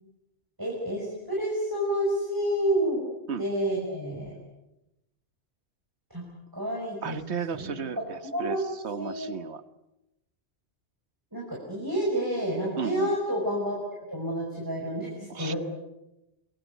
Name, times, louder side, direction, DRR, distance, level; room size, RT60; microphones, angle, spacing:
voice 1, 0.6-3.0 3.4-4.3 6.1-6.3 6.5-7.2 7.5-7.7 8.3-8.6 8.9-9.3 11.3-13.8 14.1-15.6, equal, 20° right, -2 dB, 5.7 m, -29 dB
voice 2, 7.0-8.6 8.8-9.6 12.8-13.1 15.3-15.5, right 6 dB, 85° right, 12 dB, 1.5 m, -34 dB
27.5 x 21.0 x 8.2 m, 0.91 s
omnidirectional pair, 1.1 m